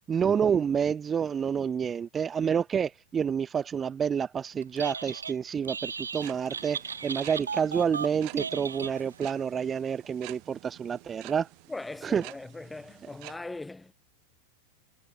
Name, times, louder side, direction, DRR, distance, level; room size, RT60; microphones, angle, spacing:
voice 1, 0.1-11.5 12.0-12.2, right 7 dB, 20° right, 0.3 m, -28 dB
Telephone, 4.6-5.4 5.6-9.3, right 5 dB, 75° right, 0.9 m, -36 dB
sound 1, 6.1-13.4, right 34 dB, 45° right, 1.8 m, -50 dB
voice 2, 11.7-13.9, left 2 dB, 5° left, 2.1 m, -40 dB
figure-of-eight pair, 90°, 0 cm